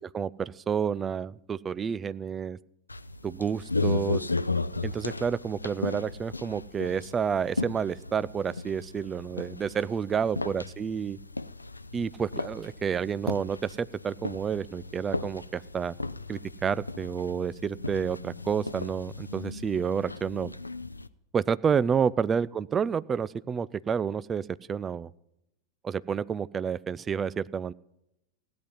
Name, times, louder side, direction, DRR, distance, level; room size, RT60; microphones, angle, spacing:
voice 1, 0.1-2.6 3.2-4.2 4.8-11.2 11.9-16.0 16.3-20.5 21.3-25.1 25.8-27.7, right 7 dB, 20° right, 19 dB, 0.4 m, -29 dB
sound 1, 2.9-21.1, left 3 dB, 80° left, 0.4 m, -35 dB
16.0 x 9.7 x 5.5 m, 0.83 s
figure-of-eight pair, 90°, 0 cm